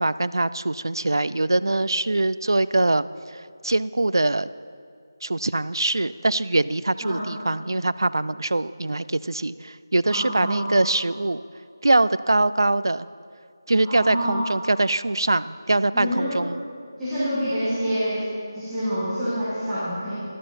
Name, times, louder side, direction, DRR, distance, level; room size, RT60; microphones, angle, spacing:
voice 1, 0.0-3.1 3.6-4.5 5.2-11.4 11.8-13.1 13.7-16.6, right 2 dB, 90° right, 16 dB, 0.4 m, -23 dB
voice 2, 10.1-10.6 13.8-14.4 15.9-16.4 17.0-18.2 18.5-20.1, equal, ahead, -19 dB, 1.3 m, -27 dB
13.0 x 12.0 x 4.2 m, 2.3 s
figure-of-eight pair, 180°, 2 cm